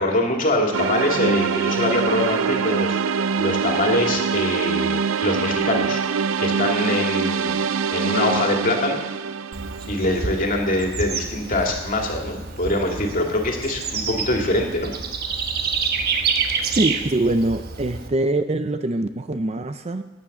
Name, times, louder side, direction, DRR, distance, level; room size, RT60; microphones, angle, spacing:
voice 1, 0.0-6.0 6.4-7.6 7.9-9.0 9.9-14.9, left 1 dB, 40° left, 1 dB, 2.3 m, -23 dB
sound 1, 0.7-10.7, right 6 dB, 80° right, 0.5 m, -24 dB
Bird / Insect, 9.5-18.1, right 5 dB, 50° right, 1.2 m, -28 dB
voice 2, 16.7-20.0, right 2 dB, 30° right, 9 dB, 0.6 m, -23 dB
12.0 x 9.5 x 7.2 m, 1.1 s
head